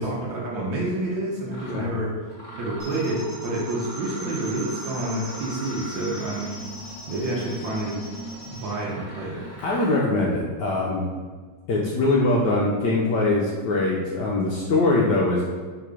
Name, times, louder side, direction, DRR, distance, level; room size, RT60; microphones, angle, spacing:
voice 1, 0.0-2.1 2.6-6.5 7.1-8.0 8.5-9.4, right 1 dB, 70° right, -5 dB, 1.5 m, -28 dB
Mechanisms, 0.8-1.0 1.5-1.9 2.3-10.1, equal, 20° left, 1.3 m, -40 dB
sound 1, 2.8-8.7, right 1 dB, 55° right, 0.3 m, -41 dB
voice 2, 9.6-11.1 11.7-15.4, left 2 dB, 75° left, -3 dB, 1.1 m, -22 dB
3.8 x 2.9 x 4.7 m, 1.5 s
omnidirectional pair, 2.2 m